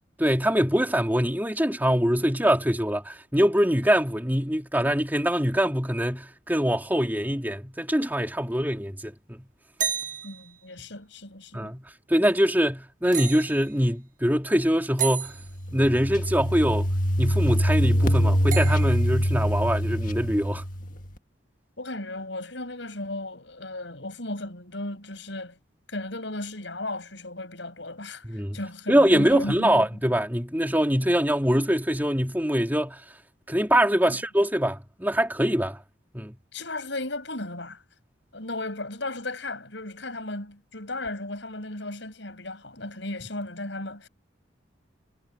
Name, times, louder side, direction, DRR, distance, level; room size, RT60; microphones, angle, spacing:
voice 1, 0.2-9.5 11.5-15.4 15.7-16.9 17.2-20.6 28.3-28.6 28.9-33.0 33.5-35.8 36.1-36.4, equal, 10° right, 3.3 m, -23 dB
sound 1, 9.8-10.5 13.1-13.7 15.0-15.5 18.5-19.2, right 8 dB, 45° right, 1.4 m, -31 dB
voice 2, 10.2-11.7 21.8-25.6 25.9-29.9 34.0-34.2 36.5-37.8 38.3-44.1, left 2 dB, 70° left, 7.9 m, -35 dB
sound 2, 15.4-21.1, equal, 45° left, 1.8 m, -24 dB
head